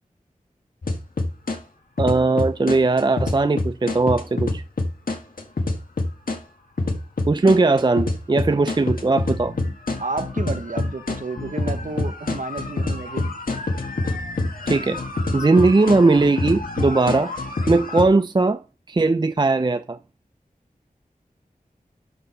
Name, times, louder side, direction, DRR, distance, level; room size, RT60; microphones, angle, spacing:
sound 1, 0.8-1.6 2.0-6.4 6.8-18.0, left 2 dB, 75° left, 1.8 m, -26 dB
voice 1, 2.0-4.6 7.3-9.5 14.7-15.0 15.3-17.3 17.7-18.6 18.9-20.0, right 3 dB, 30° right, 0.5 m, -19 dB
voice 2, 10.0-13.3, right 3 dB, 65° right, 1.2 m, -31 dB
12.0 x 4.5 x 5.4 m
wide cardioid pair, 75°, 15 cm